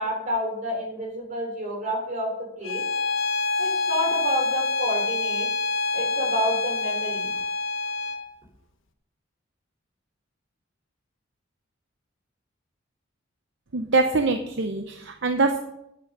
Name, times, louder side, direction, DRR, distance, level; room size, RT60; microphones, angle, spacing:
voice 1, 0.0-2.3 2.6-2.8 3.6-5.5 5.9-7.3, equal, 40° right, 0 dB, 3.5 m, -29 dB
Bowed string instrument, 2.6-8.2, left 3 dB, 70° left, 1.2 m, -26 dB
voice 2, 13.7-15.6, right 3 dB, 60° right, 5 dB, 0.7 m, -23 dB
9.2 x 8.8 x 5.5 m, 0.80 s
head